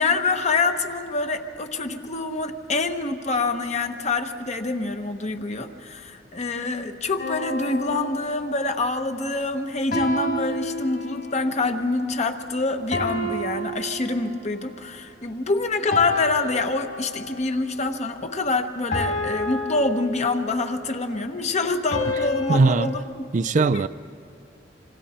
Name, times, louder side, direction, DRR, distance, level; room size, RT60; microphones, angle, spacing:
voice 1, 0.0-23.2 23.6-23.9, left 3 dB, 40° left, 6 dB, 1.2 m, -26 dB
sound 1, 7.2-8.8 9.9-11.4 12.9-14.6 15.9-17.4 18.9-20.7 21.9-23.0, left 2 dB, 55° left, 4.1 m, -29 dB
voice 2, 22.5-22.9 23.3-23.9, right 4 dB, 45° right, 12 dB, 0.4 m, -19 dB
26.5 x 26.5 x 4.4 m, 2.6 s
head